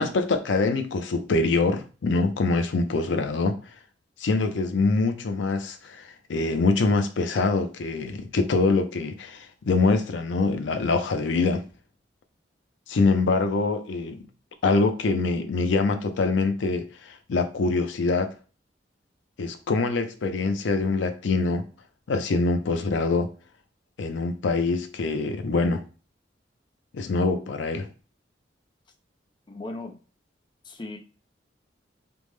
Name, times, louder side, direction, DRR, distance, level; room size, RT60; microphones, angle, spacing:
voice 1, 0.0-3.6 4.2-11.6 12.9-14.3 14.6-18.3 19.4-21.6 22.1-23.3 24.0-25.8 26.9-27.9, left 3 dB, 85° left, 0.5 m, -24 dB
voice 2, 29.5-29.9 30.6-31.0, left 2 dB, 25° left, 0.5 m, -36 dB
3.4 x 2.0 x 3.2 m
head